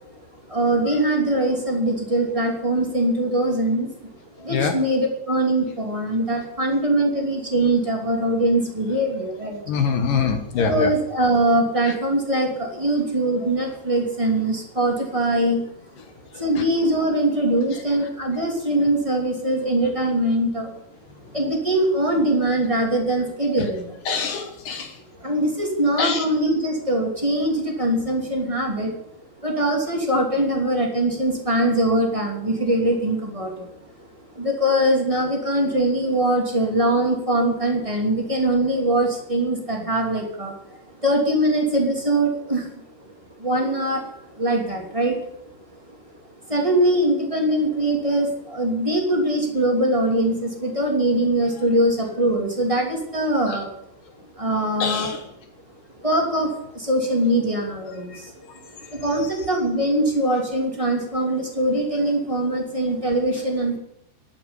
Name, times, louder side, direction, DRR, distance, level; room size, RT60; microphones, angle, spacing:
voice 1, 0.5-4.1 4.4-9.8 10.5-15.6 16.3-20.7 21.2-23.9 25.2-28.9 29.4-33.7 34.3-42.7 43.0-43.1 43.4-45.2 46.5-53.7 54.3-55.1 56.0-58.4 58.9-63.8, right 1 dB, 15° right, 0 dB, 1.3 m, -22 dB
voice 2, 9.7-10.9 24.1-24.9 26.0-26.2 53.5-53.6 54.8-55.2 59.2-59.3, left 6 dB, 65° left, 6 dB, 2.2 m, -24 dB
12.5 x 8.5 x 9.8 m, 0.74 s
omnidirectional pair, 5.6 m